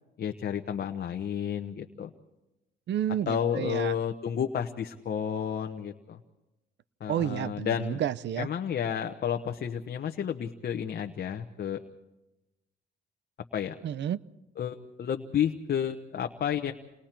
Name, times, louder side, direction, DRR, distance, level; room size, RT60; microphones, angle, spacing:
voice 1, 0.2-2.1 3.3-6.2 7.0-8.0 8.4-11.8 13.5-13.7 14.6-16.7, left 8 dB, 50° left, 4 dB, 1.0 m, -31 dB
voice 2, 2.9-4.0 7.1-8.5 13.8-14.2, right 10 dB, 65° right, 18 dB, 0.7 m, -30 dB
28.5 x 20.5 x 4.5 m, 1.0 s
cardioid pair, 90°, 20 cm